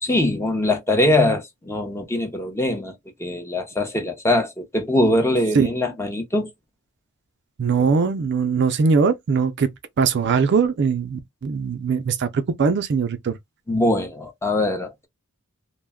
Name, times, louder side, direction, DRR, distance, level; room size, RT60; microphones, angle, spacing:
voice 1, 0.0-6.5 13.7-15.1, left 1 dB, 10° left, 0.6 m, -22 dB
voice 2, 7.6-9.7 10.0-13.4, right 5 dB, 50° right, 0.4 m, -21 dB
2.2 x 2.1 x 3.4 m
head